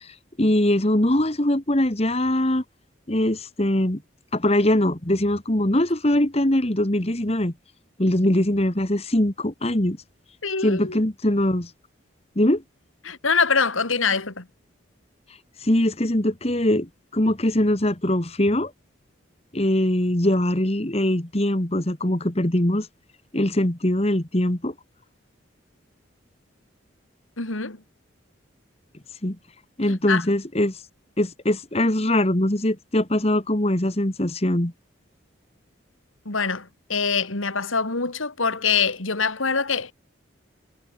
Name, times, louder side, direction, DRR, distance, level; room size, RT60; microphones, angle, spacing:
voice 1, 0.0-2.6 3.1-4.0 4.3-7.5 8.0-10.0 10.6-11.7 12.4-12.6 15.6-18.7 19.5-22.9 23.3-24.7 29.2-29.4 29.8-30.8 31.2-34.7, left 1 dB, 30° left, 1.7 m, -22 dB
voice 2, 10.4-11.0 13.0-14.4 27.4-27.8 29.9-30.2 36.2-39.9, left 5 dB, 90° left, 3.0 m, -24 dB
head